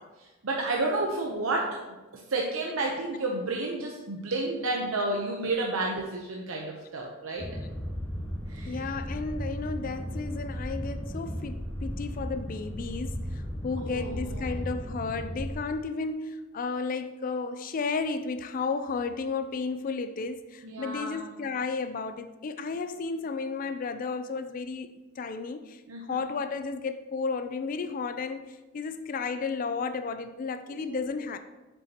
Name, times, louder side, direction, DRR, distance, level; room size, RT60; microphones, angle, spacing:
voice 1, 0.2-1.7 2.1-7.4 8.5-8.8 13.8-14.4 20.6-21.2 25.9-26.2 30.9-31.0, right 2 dB, 85° right, 0.8 m, -31 dB
sound 1, 7.4-15.5, equal, 10° left, 1.5 m, -35 dB
voice 2, 8.7-31.4, left 4 dB, 40° left, 0.3 m, -33 dB
7.0 x 6.9 x 2.9 m
head